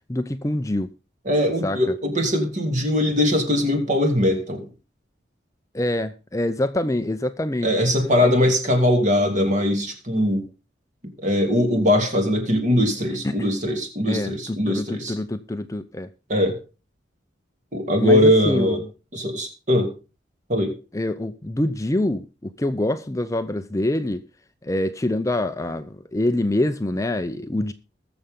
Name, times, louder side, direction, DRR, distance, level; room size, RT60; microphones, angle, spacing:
voice 1, 0.1-0.9 1.6-1.9 5.7-7.7 8.2-8.4 13.2-13.5 14.1-16.1 18.0-18.8 20.9-24.2 24.6-27.7, left 1 dB, 15° left, 0.6 m, -25 dB
voice 2, 1.3-4.7 7.6-10.4 11.2-15.2 16.3-16.6 17.7-18.8 19.1-19.9 20.5-20.7, left 1 dB, 40° right, 2.8 m, -21 dB
20.5 x 7.0 x 3.7 m
head